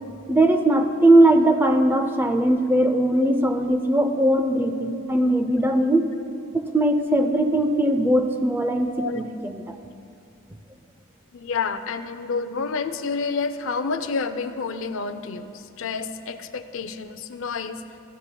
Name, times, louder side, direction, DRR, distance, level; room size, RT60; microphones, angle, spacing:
voice 1, 0.3-6.0 6.5-9.8, right 1 dB, 10° right, 6 dB, 0.4 m, -20 dB
voice 2, 11.3-17.8, left 4 dB, 60° left, 10 dB, 0.4 m, -29 dB
16.5 x 13.0 x 2.2 m, 2.5 s
head